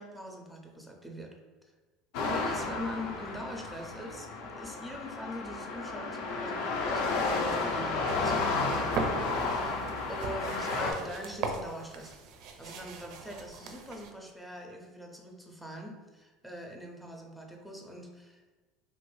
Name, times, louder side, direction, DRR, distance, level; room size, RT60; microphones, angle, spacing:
voice 1, 0.0-1.4 2.1-9.2 9.5-12.1 12.6-18.5, equal, ahead, 1 dB, 0.5 m, -43 dB
sound 1, 2.1-10.9, left 3 dB, 75° left, 0.6 m, -32 dB
sound 2, 8.9-14.1, right 4 dB, 65° right, 0.4 m, -39 dB
2.9 x 2.5 x 3.1 m, 1.3 s
supercardioid pair, 115°, 0 cm